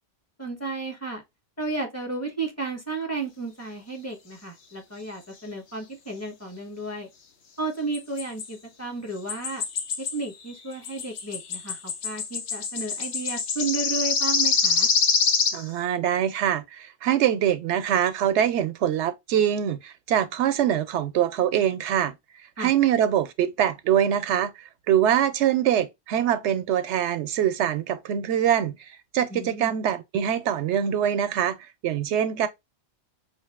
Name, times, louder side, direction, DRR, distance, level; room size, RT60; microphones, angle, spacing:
voice 1, 0.4-1.2 1.6-7.1 7.6-9.6 10.1-14.9 22.6-22.7 29.3-29.8, right 3 dB, 15° left, 1.0 m, -33 dB
sound 1, 7.9-8.5 9.3-10.2 10.5-15.6, left 5 dB, 85° left, 1.1 m, -25 dB
voice 2, 15.5-22.1 22.6-31.6 31.8-32.5, right 10 dB, 85° right, 0.9 m, -24 dB
5.0 x 2.6 x 2.3 m
omnidirectional pair, 1.1 m